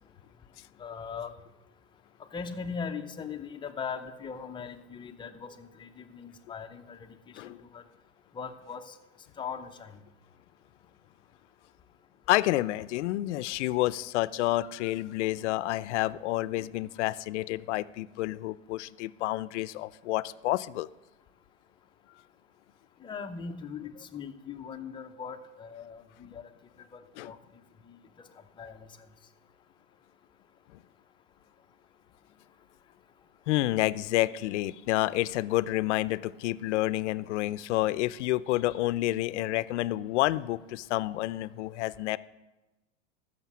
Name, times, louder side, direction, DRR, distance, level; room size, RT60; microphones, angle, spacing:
voice 1, 0.8-1.3 2.3-7.1 7.4-7.8 8.3-8.9 9.4-10.0 23.0-26.4 26.9-27.4 27.9-28.0 28.6-28.8, left 6 dB, 15° left, 6 dB, 0.6 m, -40 dB
voice 2, 12.3-20.9 27.2-27.3 30.7-30.8 33.5-42.2, left 16 dB, 70° left, 16 dB, 0.6 m, -29 dB
14.5 x 6.7 x 6.0 m, 1.1 s
supercardioid pair, 135°, 36 cm